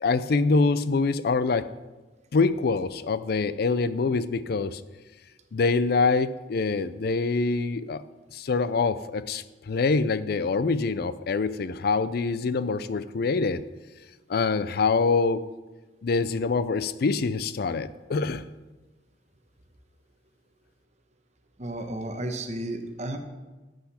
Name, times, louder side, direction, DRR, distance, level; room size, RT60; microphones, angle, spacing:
voice 1, 0.0-1.7 2.3-4.8 5.5-8.0 8.3-13.6 14.3-15.5 16.0-18.4, left 4 dB, 60° left, 15 dB, 0.4 m, -25 dB
voice 2, 21.6-23.2, right 1 dB, 40° right, 6 dB, 1.0 m, -33 dB
11.5 x 7.9 x 4.3 m, 1.2 s
head